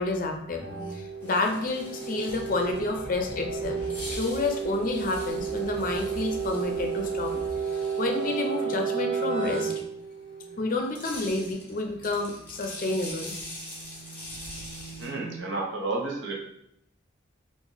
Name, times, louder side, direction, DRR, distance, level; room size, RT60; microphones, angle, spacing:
voice 1, 0.0-3.8 4.1-7.4 8.0-9.7 10.6-13.3, left 3 dB, 45° left, 3 dB, 0.5 m, -29 dB
sound 1, 0.6-10.6 12.7-15.4, right 6 dB, 40° right, 1.0 m, -33 dB
sound 2, 1.2-3.0 3.7-8.6 10.7-15.1, left 1 dB, 10° left, 0.9 m, -43 dB
sound 3, 2.3-7.8, equal, 15° right, 0.7 m, -43 dB
voice 2, 15.0-16.4, right 3 dB, 65° right, 0 dB, 0.8 m, -31 dB
2.9 x 2.5 x 3.9 m, 0.77 s
head